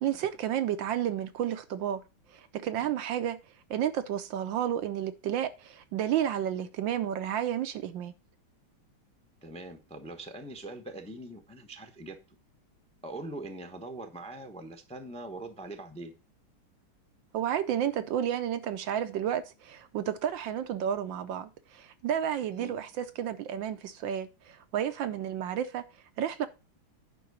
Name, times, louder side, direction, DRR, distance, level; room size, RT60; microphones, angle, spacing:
voice 1, 0.0-2.0 2.3-3.4 3.7-8.1 17.3-25.8 26.2-26.5, right 10 dB, 70° right, 1.3 m, -31 dB
voice 2, 9.4-12.2 13.0-16.1 22.6-22.7, right 2 dB, 5° left, 0.6 m, -42 dB
10.0 x 3.7 x 7.0 m
omnidirectional pair, 2.3 m